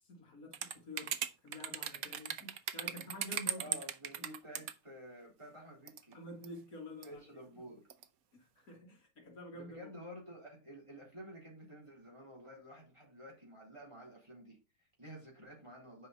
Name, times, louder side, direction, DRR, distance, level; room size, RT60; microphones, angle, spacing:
voice 1, 0.1-3.8 6.1-7.2 8.3-9.9, left 1 dB, 65° left, 2.3 m, -49 dB
sound 1, 0.5-4.7 5.9-6.1 6.4-6.5 7.0-7.1 7.9-8.0, right 9 dB, 70° right, 1.1 m, -38 dB
voice 2, 3.6-6.2 7.0-7.9 9.5-16.1, equal, 20° right, 3.8 m, -51 dB
8.3 x 5.5 x 4.0 m
omnidirectional pair, 1.6 m